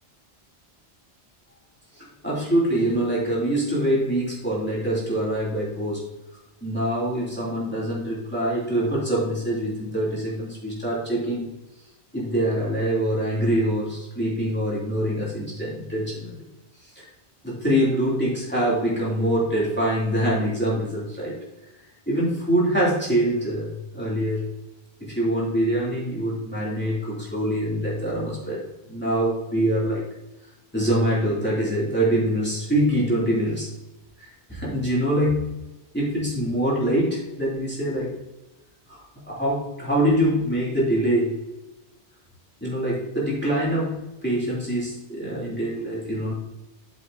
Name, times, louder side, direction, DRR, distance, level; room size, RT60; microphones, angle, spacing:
voice 1, 1.9-6.1 6.6-11.5 12.1-16.3 17.0-17.1 17.4-21.4 22.1-24.5 25.0-28.6 28.9-30.0 30.7-33.7 34.2-35.4 35.9-38.1 38.9-41.3 42.6-43.9 44.2-46.3, right 1 dB, 10° left, -7 dB, 3.0 m, -24 dB
8.9 x 7.0 x 2.8 m, 0.98 s
omnidirectional pair, 1.1 m